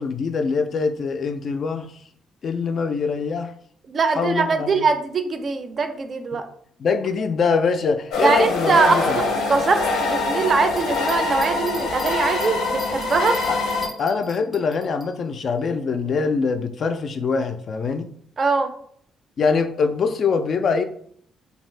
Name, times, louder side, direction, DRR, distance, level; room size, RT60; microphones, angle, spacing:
voice 1, 0.0-2.0 2.4-3.5 4.1-4.8 6.3-6.4 6.8-9.2 13.5-13.6 14.0-18.1 19.4-20.8, left 5 dB, 55° left, 0.3 m, -23 dB
voice 2, 3.9-6.4 8.2-8.9 9.5-13.4 18.4-18.7, right 4 dB, 45° right, 0.4 m, -22 dB
sound 1, 8.1-13.9, left 3 dB, 90° left, 0.7 m, -24 dB
sound 2, 10.7-15.1, equal, 10° left, 0.6 m, -40 dB
2.6 x 2.3 x 3.2 m
cardioid pair, 90°, 0 cm